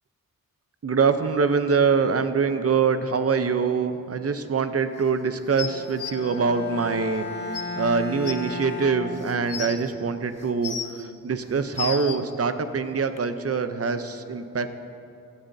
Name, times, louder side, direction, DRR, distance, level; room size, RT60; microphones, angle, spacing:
voice 1, 0.8-7.3 7.8-14.8, right 5 dB, 45° right, 10 dB, 0.6 m, -24 dB
sound 1, 5.6-6.1 7.2-7.3 7.5-7.6 8.2-8.3 9.1-9.7 10.4-11.0 11.5-12.2 13.2-13.3, left 7 dB, 65° left, 0.8 m, -32 dB
Bowed string instrument, 5.7-9.8, left 3 dB, 30° left, 1.6 m, -35 dB
16.0 x 13.0 x 2.7 m, 2.5 s
wide cardioid pair, 120°, 34 cm